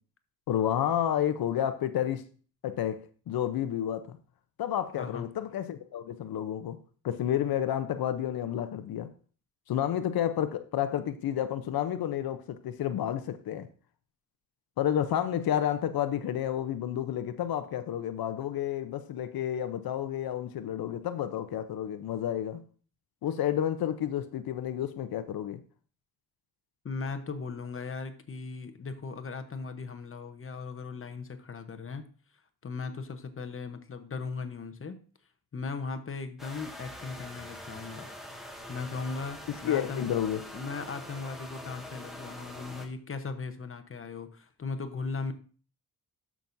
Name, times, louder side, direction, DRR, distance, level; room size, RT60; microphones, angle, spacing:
voice 1, 0.5-2.3 2.6-3.0 3.3-4.2 4.6-6.8 7.0-9.1 9.7-13.7 14.8-22.6 23.2-25.6 39.6-40.4, left 10 dB, 80° left, 0.7 m, -30 dB
voice 2, 26.8-32.1 32.6-35.0 35.5-38.1 38.7-40.0 40.5-45.3, left 4 dB, 35° left, 1.0 m, -38 dB
sound 1, 36.4-42.9, left 1 dB, ahead, 1.8 m, -44 dB
12.5 x 6.1 x 2.6 m
cardioid pair, 100°, 36 cm